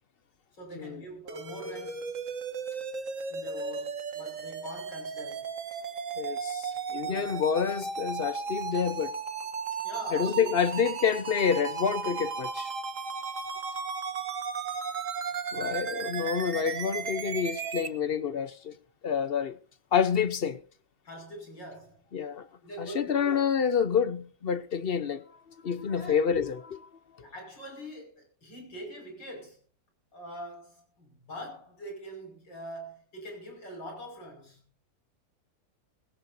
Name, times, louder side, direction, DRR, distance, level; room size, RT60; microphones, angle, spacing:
voice 1, 0.5-2.1 3.3-5.5 7.0-7.4 9.8-10.5 21.0-22.0 22.6-23.4 25.9-26.2 27.2-29.6 30.1-34.6, equal, 90° left, 6.5 m, -43 dB
sound 1, 1.3-17.9, right 5 dB, 50° right, 1.5 m, -35 dB
voice 2, 6.2-9.1 10.1-12.7 15.5-18.7 19.0-19.6 19.9-20.6 22.1-22.5 22.8-25.2 25.6-26.9, left 7 dB, 45° left, 0.8 m, -28 dB
20.0 x 16.5 x 2.7 m
omnidirectional pair, 1.9 m